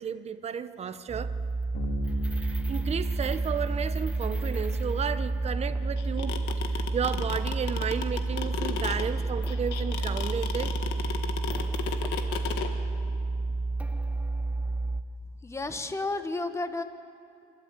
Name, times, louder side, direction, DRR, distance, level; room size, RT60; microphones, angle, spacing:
voice 1, 0.0-1.3 2.4-6.4 6.7-10.7 11.0-11.2, right 7 dB, 40° right, 11 dB, 0.9 m, -33 dB
sound 1, 1.1-15.0, right 3 dB, 10° right, 0.8 m, -30 dB
Bass guitar, 1.7-11.4, right 1 dB, 65° left, 2.9 m, -39 dB
sound 2, 6.0-12.7, left 10 dB, 85° left, 1.5 m, -33 dB
voice 2, 15.4-16.8, left 2 dB, 15° left, 9 dB, 1.2 m, -32 dB
27.0 x 12.5 x 8.1 m, 2.5 s
cardioid pair, 110°, 17 cm